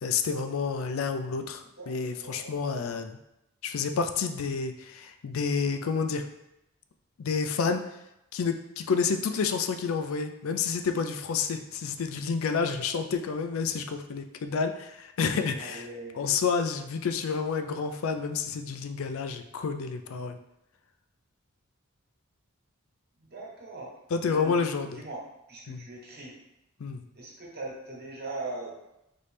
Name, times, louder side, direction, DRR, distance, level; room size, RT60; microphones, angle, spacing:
voice 1, 0.0-3.2 3.6-6.2 7.2-7.8 8.3-15.9 16.2-20.4 24.1-25.0 25.7-25.9 26.8-27.0, left 5 dB, 70° left, 7 dB, 0.4 m, -29 dB
voice 2, 1.8-2.6 15.6-16.4 23.3-23.9 24.3-25.2 25.5-26.3 27.1-28.7, right 2 dB, 50° right, -4 dB, 1.2 m, -40 dB
4.2 x 3.1 x 3.3 m, 0.87 s
head